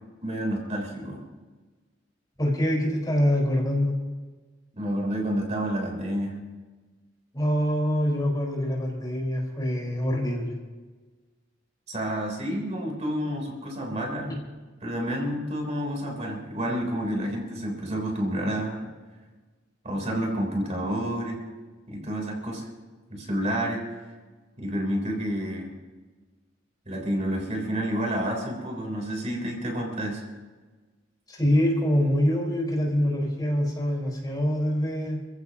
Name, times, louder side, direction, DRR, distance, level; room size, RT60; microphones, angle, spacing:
voice 1, 0.2-1.2 4.7-6.4 11.9-14.4 14.8-18.9 19.8-21.4 21.9-22.7 23.1-23.8 24.6-25.7 26.9-30.3, equal, 35° right, 1 dB, 3.5 m, -29 dB
voice 2, 2.4-4.0 7.3-10.5 31.3-35.2, equal, 20° left, -1 dB, 4.5 m, -25 dB
29.0 x 15.5 x 2.9 m, 1.3 s
head